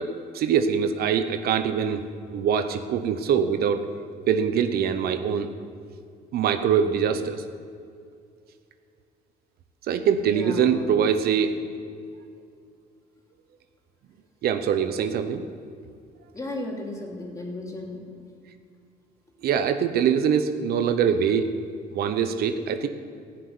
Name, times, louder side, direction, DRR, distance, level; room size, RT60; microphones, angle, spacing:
voice 1, 0.0-2.0 2.3-3.8 4.3-5.6 6.3-7.4 9.9-11.5 14.4-15.4 19.4-21.5 21.9-22.9, right 7 dB, 65° right, 9 dB, 0.9 m, -23 dB
voice 2, 10.2-10.9 16.3-18.1, left 2 dB, 20° left, -1 dB, 3.0 m, -35 dB
15.5 x 6.7 x 9.5 m, 2.3 s
cardioid pair, 110°, 17 cm